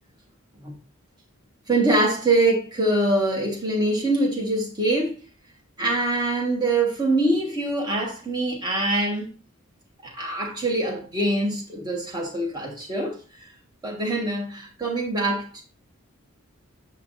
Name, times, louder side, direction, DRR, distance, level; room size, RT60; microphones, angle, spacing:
voice 1, 1.7-5.2 5.8-9.3 10.0-13.5 13.8-15.6, right 2 dB, 20° right, 1.4 m, -24 dB
7.1 x 5.7 x 2.6 m
head